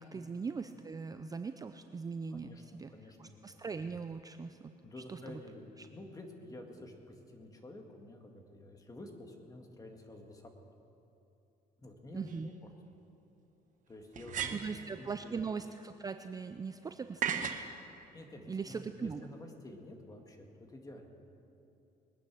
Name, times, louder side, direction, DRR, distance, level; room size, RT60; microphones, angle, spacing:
voice 1, 0.0-2.9 3.2-4.7 5.1-5.4 5.8-5.9 12.1-12.5 14.5-17.7 18.5-19.3, right 5 dB, 20° right, 8 dB, 0.4 m, -40 dB
voice 2, 2.3-3.6 4.8-10.5 11.8-12.5 13.9-15.3 18.1-21.1, left 1 dB, 20° left, 3 dB, 2.0 m, -50 dB
sound 1, 12.3-12.4 14.1-14.8 17.2-17.7, right 8 dB, 50° right, 1.1 m, -35 dB
21.0 x 9.7 x 6.2 m, 2.8 s
cardioid pair, 110°, 17 cm